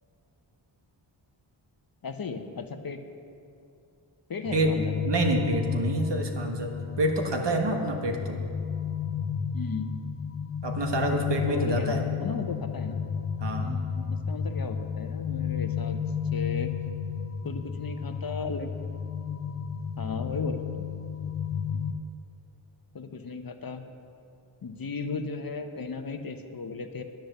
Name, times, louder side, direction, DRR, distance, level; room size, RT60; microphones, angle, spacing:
voice 1, 2.0-3.0 4.3-5.0 9.5-9.9 11.1-11.2 11.5-13.0 13.6-16.0 16.3-16.7 17.4-18.7 20.0-20.9 21.7-21.8 22.9-23.8 24.6-27.0, left 4 dB, 50° left, 7 dB, 0.8 m, -35 dB
sound 1, 4.4-21.9, left 7 dB, 35° left, 0.4 m, -32 dB
voice 2, 5.1-8.4 10.6-12.0 13.4-13.8, right 1 dB, 60° right, 3 dB, 1.4 m, -27 dB
10.5 x 9.9 x 6.6 m, 2.7 s
wide cardioid pair, 125°, 47 cm